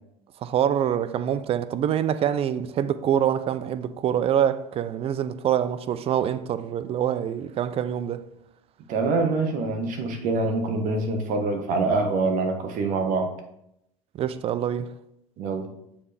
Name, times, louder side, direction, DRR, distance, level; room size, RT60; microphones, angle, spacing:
voice 1, 0.4-8.2 14.1-14.9, right 9 dB, 35° right, 0.5 m, -25 dB
voice 2, 8.9-13.3 15.4-15.7, right 3 dB, 50° right, 1.2 m, -25 dB
7.2 x 4.7 x 3.4 m
hypercardioid pair, 80°, 17 cm